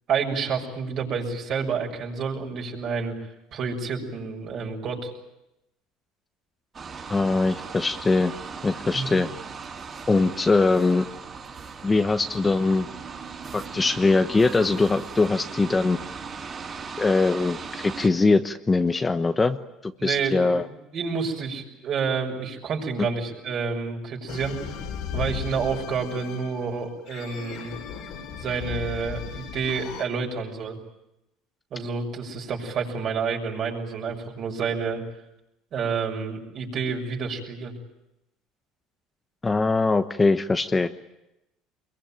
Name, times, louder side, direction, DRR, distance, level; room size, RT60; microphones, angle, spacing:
voice 1, 0.1-3.1 3.5-5.1 8.9-9.2 20.0-24.6 25.1-27.8 28.4-30.8 31.7-35.0 35.7-37.7, right 5 dB, 50° right, 2 dB, 6.7 m, -29 dB
sound 1, 6.7-18.1, right 5 dB, 35° right, 4.9 m, -38 dB
voice 2, 7.1-8.3 8.6-9.3 10.1-11.0 11.8-12.9 13.5-16.0 17.0-19.6 19.8-20.7 39.4-40.9, left 3 dB, 20° left, 8 dB, 1.0 m, -22 dB
sound 2, 24.3-30.0, left 7 dB, 70° left, 3.8 m, -36 dB
24.5 x 22.5 x 9.1 m, 0.91 s
supercardioid pair, 110°, 0 cm